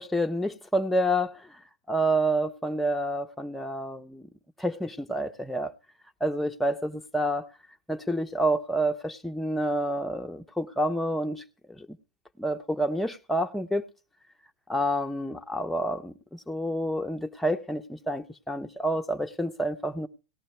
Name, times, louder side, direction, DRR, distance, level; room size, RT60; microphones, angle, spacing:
voice 1, 0.0-1.5 1.9-4.3 4.6-5.7 6.2-7.5 7.9-11.4 11.8-11.9 12.4-13.9 14.7-20.1, right 1 dB, 5° left, 1.0 m, -28 dB
18.5 x 14.0 x 3.3 m
hypercardioid pair, 120°, 4 cm